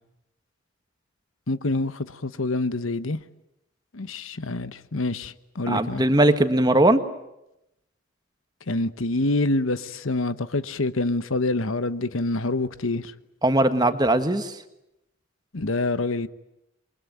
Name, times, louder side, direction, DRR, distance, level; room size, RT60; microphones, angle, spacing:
voice 1, 1.5-3.2 3.9-6.0 8.7-13.1 15.5-16.3, left 2 dB, 75° left, 1.1 m, -26 dB
voice 2, 5.7-7.0 13.4-14.5, right 1 dB, 20° right, 1.6 m, -19 dB
28.0 x 23.0 x 9.2 m
head